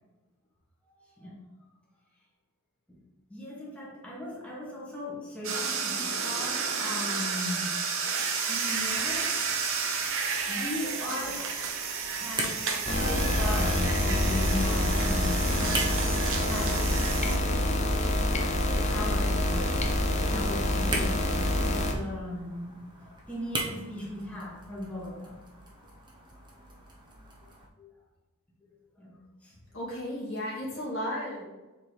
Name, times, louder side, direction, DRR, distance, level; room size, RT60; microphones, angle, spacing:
voice 1, 0.9-1.3 2.9-3.0 3.3-7.8 8.5-9.8 10.5-11.5 12.2-16.9 17.2-17.8 18.6-19.8 20.1-22.8 23.3-25.4 27.8-27.9 28.6-29.6, left 1 dB, 5° left, -5 dB, 1.7 m, -38 dB
sound 1, 5.4-17.4, right 5 dB, 60° right, 0.8 m, -31 dB
sound 2, 8.7-27.7, right 2 dB, 20° right, 0.9 m, -42 dB
sound 3, 12.9-21.9, left 1 dB, 30° left, 0.7 m, -26 dB
voice 2, 29.7-31.4, equal, 65° left, -7 dB, 2.0 m, -34 dB
7.2 x 3.9 x 3.4 m, 1.2 s
head